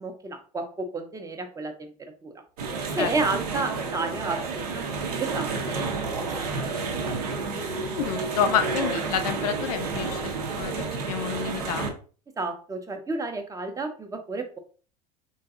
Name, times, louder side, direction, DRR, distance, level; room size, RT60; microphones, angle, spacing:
voice 1, 0.0-1.9 2.2-2.3 2.9-4.9 5.2-6.6 7.0-7.1 12.4-14.6, right 3 dB, 15° right, 6 dB, 0.6 m, -31 dB
sound 1, 2.6-11.9, right 4 dB, 70° right, 0.6 m, -30 dB
voice 2, 7.9-11.9, left 8 dB, 65° left, 8 dB, 0.5 m, -29 dB
3.8 x 2.6 x 2.4 m, 0.40 s
figure-of-eight pair, 70°, 21 cm